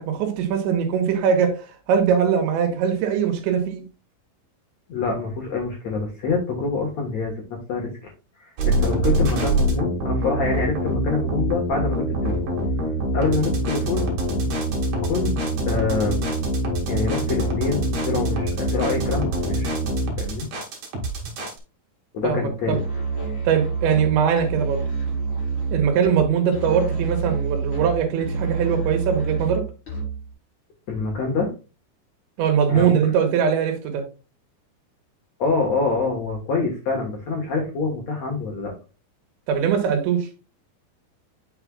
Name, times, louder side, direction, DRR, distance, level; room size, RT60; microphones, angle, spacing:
voice 1, 0.0-3.8 22.2-22.8 23.5-24.8 25.7-29.6 32.4-34.0 39.5-40.3, right 7 dB, 80° right, 3.5 m, -21 dB
voice 2, 4.9-8.1 8.4-12.5 13.1-14.0 15.0-15.3 15.7-16.2 16.9-19.7 20.2-20.5 22.1-22.8 30.9-31.5 32.7-33.1 35.4-38.7, left 4 dB, 75° left, 1.6 m, -26 dB
sound 1, 8.6-21.6, right 1 dB, 55° right, 2.9 m, -24 dB
Musical instrument, 22.7-30.3, right 4 dB, 25° left, 4.4 m, -28 dB
8.3 x 6.7 x 2.3 m
omnidirectional pair, 5.3 m